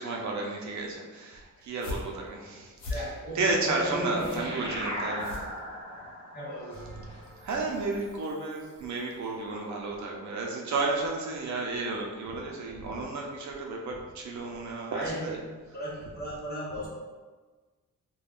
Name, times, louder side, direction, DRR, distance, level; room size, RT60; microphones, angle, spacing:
voice 1, 0.0-3.1 3.3-5.3 7.4-15.4, right 3 dB, 60° right, -1 dB, 0.5 m, -32 dB
sound 1, 1.6-6.1, left 2 dB, 85° left, 0.9 m, -40 dB
voice 2, 2.9-4.5 5.9-6.0 6.3-6.9 14.9-15.4 15.7-16.9, equal, 30° left, -7 dB, 1.0 m, -35 dB
sound 2, 3.7-8.5, equal, 15° left, 0.5 m, -39 dB
Bell, 6.7-9.5, right 3 dB, 50° left, 1.2 m, -52 dB
2.4 x 2.2 x 3.4 m, 1.4 s
wide cardioid pair, 155°, 32 cm